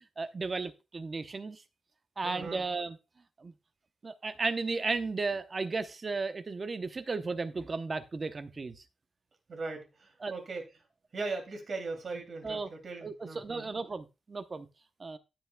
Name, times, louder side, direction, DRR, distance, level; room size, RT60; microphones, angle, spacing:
voice 1, 0.2-1.6 2.2-3.0 3.4-3.5 4.0-8.8 10.2-10.3 12.4-12.7 13.0-14.7 15.0-15.2, right 4 dB, 30° right, 0.8 m, -34 dB
voice 2, 2.2-2.6 9.5-10.7 11.1-13.7, right 3 dB, 45° right, 2.7 m, -39 dB
17.0 x 5.8 x 2.2 m
wide cardioid pair, 150°, 0 cm